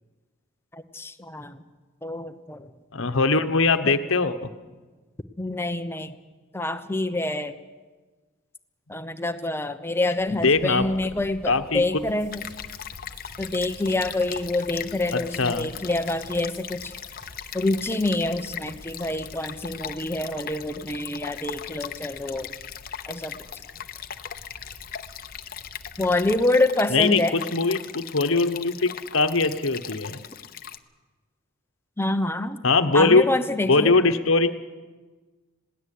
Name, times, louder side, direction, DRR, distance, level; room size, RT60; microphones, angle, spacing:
voice 1, 0.7-1.6 2.0-2.7 3.8-4.0 5.4-6.1 6.5-7.5 8.9-12.5 13.4-16.9 17.5-22.5 23.1-23.3 26.0-27.4 32.0-32.6 32.9-33.9, left 2 dB, 10° left, 9 dB, 0.9 m, -26 dB
voice 2, 2.9-4.5 10.3-10.9 11.4-12.0 15.1-15.7 26.9-30.2 32.6-33.2 33.7-34.5, left 3 dB, 65° left, 9 dB, 1.1 m, -21 dB
sound 1, 10.2-26.4, equal, 75° right, 4.7 m, -50 dB
sound 2, 12.0-19.6, right 1 dB, 55° right, 2.2 m, -51 dB
Stream, 12.3-30.8, left 9 dB, 45° left, 0.8 m, -39 dB
21.5 x 17.0 x 8.5 m, 1.3 s
head